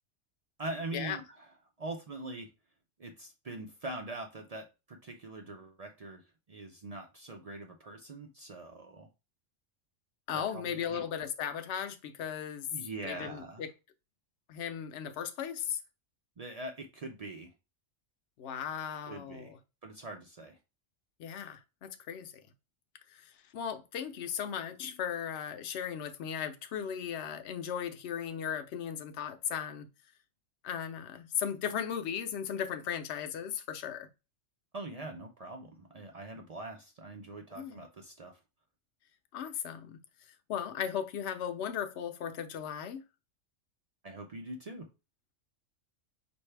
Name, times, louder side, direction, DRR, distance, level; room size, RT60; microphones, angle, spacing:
voice 1, 0.6-1.4 1.8-2.5 3.0-6.2 6.5-9.1 10.3-11.0 12.7-13.6 16.4-17.5 19.1-19.5 19.8-20.6 34.7-38.4 44.0-44.9, right 2 dB, 55° right, 0.4 m, -43 dB
voice 2, 10.3-12.7 13.0-13.7 14.5-15.8 18.4-19.6 21.2-22.3 23.1-29.9 30.6-34.1 37.5-37.8 39.3-40.0 40.5-43.0, left 8 dB, 65° left, 0.9 m, -37 dB
5.5 x 2.6 x 3.2 m
omnidirectional pair, 1.3 m